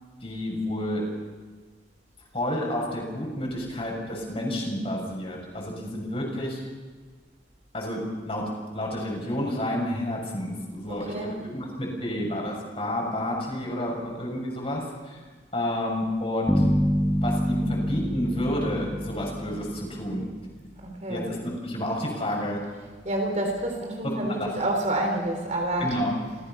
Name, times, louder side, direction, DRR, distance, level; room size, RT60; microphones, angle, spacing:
voice 1, 0.2-1.0 2.3-6.6 7.7-8.5 8.7-15.2 15.5-16.6 17.2-20.3 21.1-22.6 24.0-24.5 25.8-26.2, left 1 dB, 30° left, -1 dB, 6.8 m, -30 dB
voice 2, 10.9-11.5 20.8-21.3 23.0-25.9 26.3-26.4, right 1 dB, 40° right, 2 dB, 3.8 m, -28 dB
sound 1, 16.5-20.4, equal, ahead, 1.0 m, -26 dB
28.5 x 17.5 x 5.9 m, 1.5 s
head